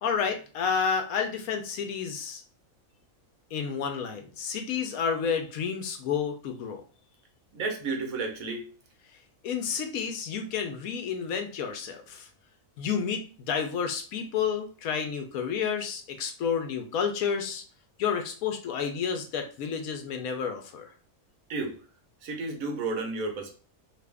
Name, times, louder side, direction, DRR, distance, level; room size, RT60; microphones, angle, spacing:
voice 1, 0.0-2.4 3.5-6.8 9.4-12.3 12.8-17.6 18.0-20.9, left 6 dB, 75° left, 5 dB, 1.1 m, -30 dB
voice 2, 7.5-8.7 21.5-21.8 22.2-23.6, right 3 dB, 70° right, 3 dB, 1.2 m, -32 dB
3.0 x 2.5 x 3.3 m, 0.37 s
omnidirectional pair, 1.5 m